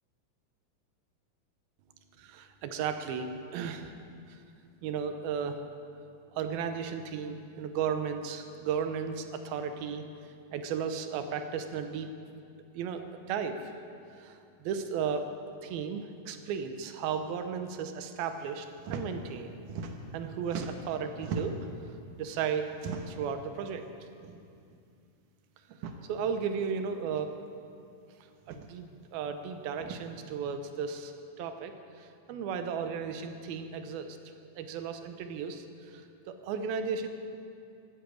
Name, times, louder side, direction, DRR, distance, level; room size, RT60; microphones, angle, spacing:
voice 1, 2.2-3.9 4.3-4.4 4.8-5.6 6.4-10.0 10.5-12.1 12.7-13.0 13.3-13.6 14.2-14.3 14.6-15.3 15.6-19.5 20.1-21.6 22.2-22.7 23.1-23.9 26.1-27.4 28.5-31.1 31.4-31.7 32.0-34.2 34.6-35.6 35.9-36.0 36.3-37.1, right 6 dB, 85° right, 8 dB, 2.7 m, -34 dB
sound 1, 18.8-19.1 19.4-20.2 20.5-21.7 22.7-23.3 24.2-24.4 24.7-24.8 25.7-26.0 27.1-27.2 28.4-28.7 29.8-30.0, right 4 dB, 70° right, 2.4 m, -39 dB
14.5 x 10.0 x 8.4 m, 2.4 s
omnidirectional pair, 4.3 m